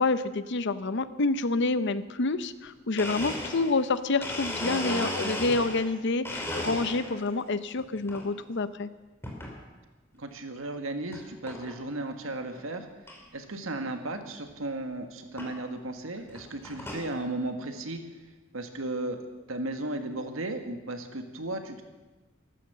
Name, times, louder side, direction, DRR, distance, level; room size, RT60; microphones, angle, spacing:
voice 1, 0.0-8.9, left 3 dB, 60° left, 13 dB, 0.8 m, -28 dB
Domestic sounds home sounds, 2.6-2.7 3.0-5.9 6.2-7.3 7.7-8.2 9.2-9.6 10.1-10.2 11.1-11.2 11.5-11.8 12.2-12.3 12.5-12.6 13.1-13.2 14.5-14.6 15.4-15.5 16.2-17.1, left 1 dB, 10° left, 3.0 m, -35 dB
voice 2, 10.1-12.9 13.3-18.0 18.5-19.2 19.5-21.8, right 2 dB, 85° right, 6 dB, 1.7 m, -35 dB
14.0 x 13.5 x 6.9 m, 1.2 s
head